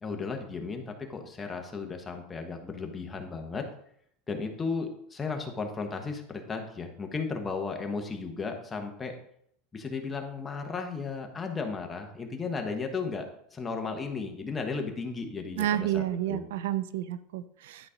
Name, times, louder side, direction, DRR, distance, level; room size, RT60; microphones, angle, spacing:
voice 1, 0.0-3.7 4.3-9.1 9.7-16.4, left 4 dB, 15° left, 4 dB, 1.1 m, -35 dB
voice 2, 15.6-17.9, right 12 dB, 85° right, 14 dB, 0.6 m, -30 dB
11.0 x 4.2 x 5.0 m, 0.69 s
supercardioid pair, 160°, 0 cm